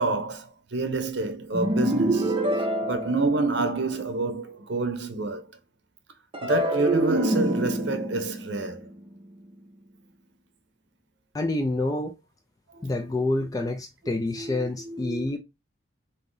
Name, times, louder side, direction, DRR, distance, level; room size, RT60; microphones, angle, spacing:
voice 1, 0.0-5.5 6.4-8.9 11.8-11.9 12.7-13.7 14.0-15.4, right 3 dB, 60° right, 0.7 m, -29 dB
sound 1, 1.5-3.9 6.3-9.7, right 1 dB, 25° right, 0.6 m, -27 dB
voice 2, 11.3-12.2 12.8-15.4, left 2 dB, 20° left, 0.4 m, -27 dB
3.9 x 2.7 x 3.8 m
head